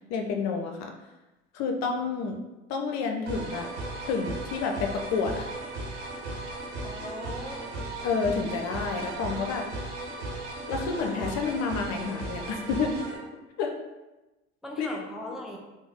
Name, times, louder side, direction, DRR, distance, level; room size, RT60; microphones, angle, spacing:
voice 1, 0.1-0.9 1.5-2.4 2.7-3.7 4.0-5.5 8.0-9.7 10.7-12.9 13.6-13.7 14.8-14.9, left 5 dB, 50° left, 3 dB, 0.5 m, -29 dB
sound 1, 3.3-13.2, right 2 dB, 80° right, 1.0 m, -36 dB
voice 2, 6.8-7.7 14.6-15.6, left 1 dB, ahead, 0 dB, 0.4 m, -39 dB
3.4 x 2.0 x 3.4 m, 1.1 s
hypercardioid pair, 60°, 35 cm